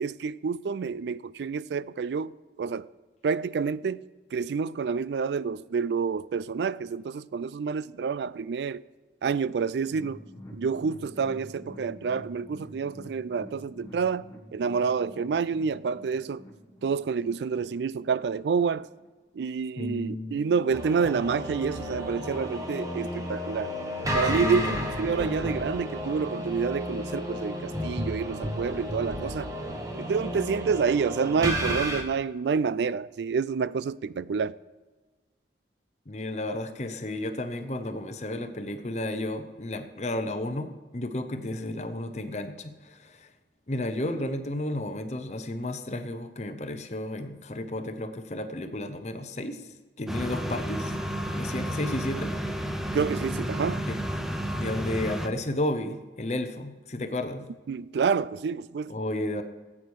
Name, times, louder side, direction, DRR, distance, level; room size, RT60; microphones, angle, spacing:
voice 1, 0.0-2.3 2.6-2.9 3.2-4.0 4.3-8.8 9.2-10.2 10.5-16.4 16.8-18.9 19.4-23.7 24.1-29.5 29.9-34.5 52.9-53.8 57.7-58.9, right 5 dB, 75° right, 0.3 m, -28 dB
sound 1, 9.8-19.1 19.4-19.5 19.9-20.0, equal, 20° left, 1.4 m, -48 dB
voice 2, 19.8-20.4 24.3-25.2 36.1-43.3 43.7-49.7 50.0-51.0 51.3-52.3 53.9-54.0 54.5-57.5 58.9-59.4, left 1 dB, 40° left, 0.8 m, -32 dB
sound 2, 20.7-32.0, equal, 20° right, 1.3 m, -32 dB
sound 3, 50.1-55.3, equal, ahead, 0.7 m, -31 dB
14.0 x 8.6 x 4.7 m
head